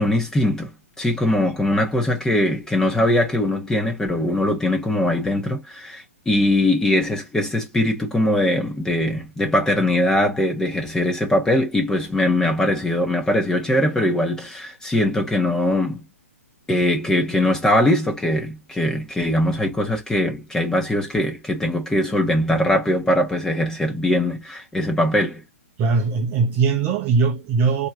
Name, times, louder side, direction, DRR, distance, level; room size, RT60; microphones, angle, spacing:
voice 1, 0.0-16.1 16.7-25.4, left 1 dB, 5° left, 1.3 m, -21 dB
voice 2, 25.8-27.9, right 4 dB, 25° right, 0.9 m, -20 dB
4.4 x 2.9 x 2.5 m
figure-of-eight pair, 125°, 8 cm